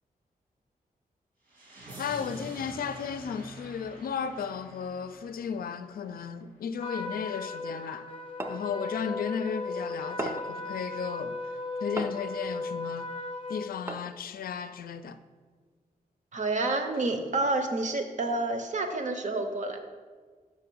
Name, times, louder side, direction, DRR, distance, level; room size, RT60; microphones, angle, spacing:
sound 1, 1.5-6.4, right 1 dB, 80° right, 2.2 m, -46 dB
voice 1, 2.0-8.1 8.5-11.4 11.8-13.1 13.5-15.2, left 7 dB, 80° left, 0.4 m, -34 dB
Trumpet, 6.8-13.7, left 2 dB, 35° left, 0.6 m, -36 dB
sound 2, 8.4-8.7 10.2-10.6 12.0-12.3 13.9-14.3, right 1 dB, 15° right, 0.4 m, -36 dB
voice 2, 16.3-19.8, right 2 dB, 55° right, 0.8 m, -29 dB
5.7 x 5.6 x 6.1 m
wide cardioid pair, 175°, 15 cm